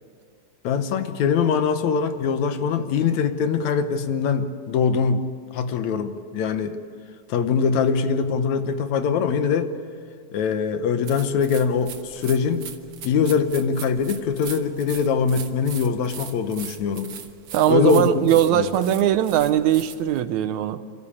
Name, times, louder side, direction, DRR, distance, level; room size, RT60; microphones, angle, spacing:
voice 1, 0.6-5.3 5.5-6.8 7.3-9.7 10.3-12.7 13.0-17.1 17.7-18.7, left 6 dB, 75° left, 9 dB, 2.3 m, -22 dB
sound 1, 11.0-20.2, right 8 dB, 55° right, 1.9 m, -40 dB
voice 2, 17.5-20.8, right 11 dB, 85° right, 9 dB, 2.1 m, -20 dB
28.0 x 14.0 x 8.5 m, 2.1 s
omnidirectional pair, 3.3 m